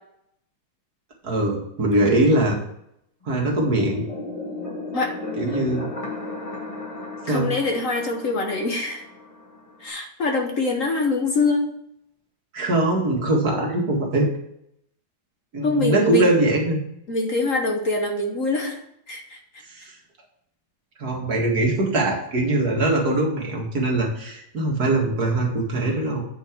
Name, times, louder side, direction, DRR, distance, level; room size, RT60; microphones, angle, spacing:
voice 1, 1.2-2.6 3.3-4.0 5.4-5.9 7.2-7.5 12.5-14.3 15.5-16.8 19.6-19.9 21.0-26.2, right 2 dB, 55° right, -1 dB, 2.3 m, -22 dB
sound 1, 3.3-9.9, left 2 dB, 20° left, 1.4 m, -35 dB
voice 2, 7.3-9.0 9.8-11.7 15.6-16.3 17.1-18.8 19.1-19.4, left 3 dB, 50° left, 3 dB, 1.3 m, -24 dB
8.8 x 5.7 x 4.5 m, 0.75 s
omnidirectional pair, 2.0 m